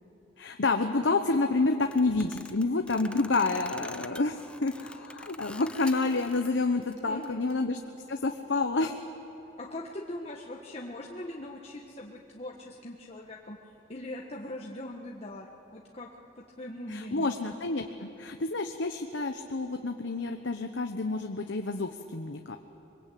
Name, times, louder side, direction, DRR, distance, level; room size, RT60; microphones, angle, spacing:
voice 1, 0.4-7.8 8.1-9.0 16.9-22.6, left 3 dB, 85° left, 5 dB, 1.0 m, -29 dB
sound 1, 1.8-6.5 6.8-7.5, left 2 dB, 5° left, 0.5 m, -46 dB
voice 2, 7.0-7.6 9.6-13.6 13.9-16.1 16.4-17.4, left 1 dB, 35° left, -1 dB, 1.4 m, -41 dB
24.0 x 22.5 x 8.6 m, 3.0 s
head